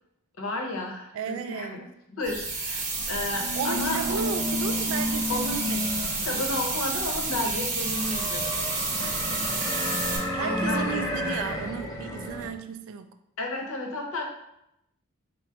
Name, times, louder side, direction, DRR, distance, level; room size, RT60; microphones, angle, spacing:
voice 1, 0.4-1.8 2.1-4.2 5.3-5.6 6.2-8.6 10.0-11.0 13.4-14.2, left 2 dB, 75° left, 2 dB, 0.8 m, -32 dB
voice 2, 1.1-1.9 3.5-6.4 9.0-9.5 10.3-13.1, right 6 dB, 65° right, 8 dB, 0.3 m, -35 dB
sound 1, 2.2-10.2, right 3 dB, 35° right, 0.7 m, -30 dB
sound 2, 3.1-12.5, left 1 dB, 15° left, 0.5 m, -32 dB
3.7 x 2.1 x 4.4 m, 0.81 s
head